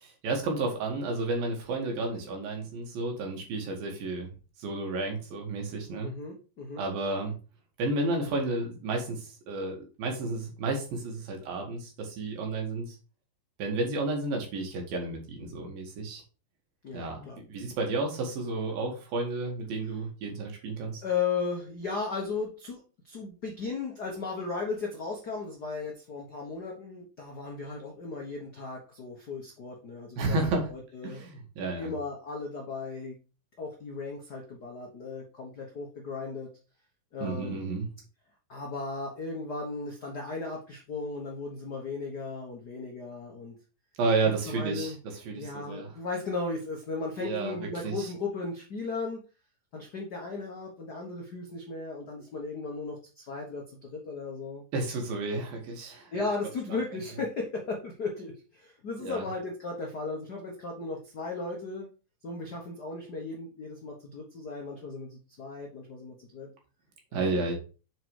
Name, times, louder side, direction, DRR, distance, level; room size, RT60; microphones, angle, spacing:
voice 1, 0.0-4.3 4.6-6.1 6.8-7.3 7.8-13.0 13.6-16.2 16.9-21.0 30.2-30.7 31.0-31.9 37.2-37.9 44.0-45.9 47.2-47.6 47.8-48.1 54.7-56.3 56.7-56.8 59.0-59.2 67.1-67.5, right 3 dB, 80° right, 2 dB, 3.8 m, -32 dB
voice 2, 6.0-6.8 16.8-17.4 21.0-31.2 31.8-33.2 33.6-36.5 37.1-37.6 38.5-43.5 44.4-45.0 45.3-49.2 49.7-54.6 56.1-61.9 62.2-66.5 67.1-67.5, left 4 dB, 75° left, 0 dB, 0.9 m, -36 dB
7.5 x 4.8 x 4.8 m, 0.34 s
omnidirectional pair, 4.1 m